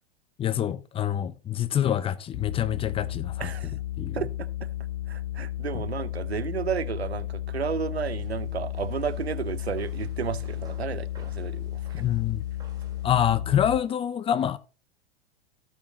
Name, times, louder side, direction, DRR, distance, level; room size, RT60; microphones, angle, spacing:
voice 1, 0.4-3.5 4.0-4.2 5.7-5.8 11.9-12.4 13.0-14.6, left 10 dB, 20° left, 0.4 m, -26 dB
sound 1, 2.3-13.8, left 14 dB, 65° left, 1.0 m, -33 dB
voice 2, 3.4-3.8 4.1-4.7 5.1-12.0, right 7 dB, 90° right, 0.7 m, -32 dB
sound 2, 7.5-13.3, right 6 dB, 15° right, 2.4 m, -55 dB
14.5 x 6.3 x 3.0 m
figure-of-eight pair, 95°, 31 cm